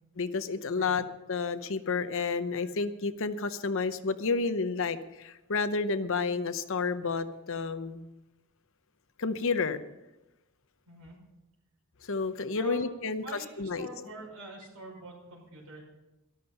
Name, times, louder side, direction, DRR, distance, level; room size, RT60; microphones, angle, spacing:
voice 1, 0.2-8.1 9.2-9.8 12.0-13.2 13.6-13.9, left 4 dB, 65° left, 11 dB, 0.8 m, -30 dB
voice 2, 12.5-15.8, right 2 dB, 75° right, -1 dB, 5.7 m, -45 dB
13.5 x 12.5 x 5.7 m, 0.99 s
head